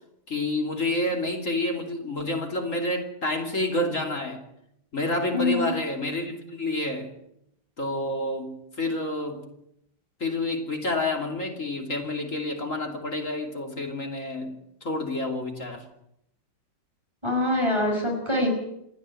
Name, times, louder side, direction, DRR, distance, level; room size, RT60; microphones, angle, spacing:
voice 1, 0.3-4.4 4.9-7.1 7.8-9.5 10.2-15.9, left 2 dB, 40° left, 3 dB, 3.2 m, -29 dB
voice 2, 5.3-5.7 17.2-18.5, left 1 dB, 15° right, 1 dB, 5.6 m, -24 dB
28.0 x 9.9 x 9.7 m, 0.78 s
omnidirectional pair, 2.1 m